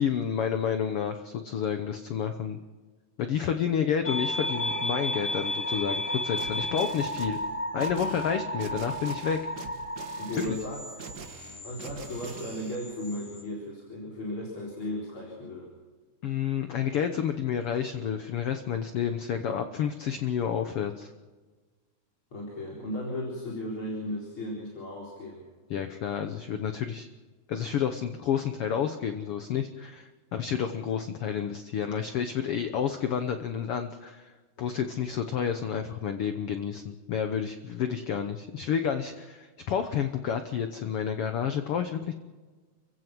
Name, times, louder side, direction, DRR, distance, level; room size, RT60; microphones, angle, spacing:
voice 1, 0.0-2.6 3.2-7.4 7.7-9.4 10.4-10.5 16.2-21.1 25.7-27.1 27.5-34.3 34.6-42.1, left 8 dB, 60° left, 8 dB, 1.6 m, -30 dB
sound 1, 4.0-13.4, left 1 dB, 20° left, 2.1 m, -34 dB
sound 2, 6.4-12.8, right 4 dB, 40° right, 1.6 m, -44 dB
voice 2, 10.2-11.2 11.6-15.7 22.3-25.4, left 1 dB, 40° left, -4 dB, 4.9 m, -36 dB
29.5 x 16.0 x 6.1 m, 1.4 s
omnidirectional pair, 3.5 m